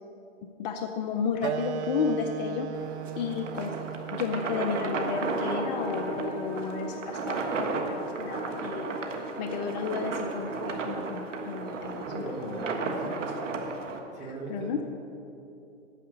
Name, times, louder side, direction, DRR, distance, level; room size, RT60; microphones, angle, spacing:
voice 1, 0.6-2.7 3.2-3.7 4.1-8.9 9.4-13.0 14.5-14.8, left 6 dB, 35° left, 4 dB, 0.6 m, -32 dB
Wind instrument woodwind instrument, 1.4-6.5, right 9 dB, 65° right, 0.5 m, -37 dB
sound 1, 2.7-14.0, right 3 dB, 85° right, 1.4 m, -34 dB
sound 2, 5.0-13.0, right 2 dB, 35° right, 2.4 m, -42 dB
voice 2, 12.0-13.2 14.1-14.8, right 2 dB, 20° right, 0 dB, 1.5 m, -39 dB
9.2 x 6.7 x 8.3 m, 2.7 s
hypercardioid pair, 140°, 36 cm